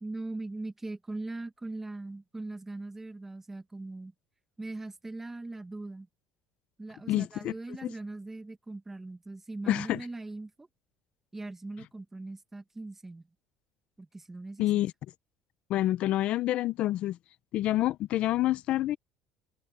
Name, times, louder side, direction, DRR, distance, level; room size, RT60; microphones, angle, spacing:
voice 1, 0.0-4.1 4.6-6.1 6.8-10.7 11.3-13.3 14.0-14.7, right 2 dB, 15° right, 1.5 m, -40 dB
voice 2, 7.1-7.5 7.8-7.9 9.7-10.0 14.6-14.9 15.7-17.2 17.5-19.0, left 14 dB, 60° left, 0.6 m, -27 dB
supercardioid pair, 100°, 2 cm